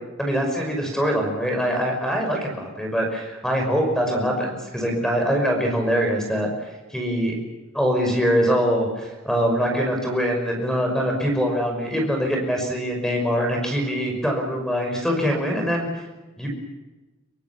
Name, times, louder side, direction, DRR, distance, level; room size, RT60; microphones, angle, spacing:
voice 1, 0.2-7.3 7.7-16.0 16.4-16.5, equal, 5° left, 2 dB, 5.8 m, -23 dB
25.5 x 24.0 x 7.2 m, 1.1 s
head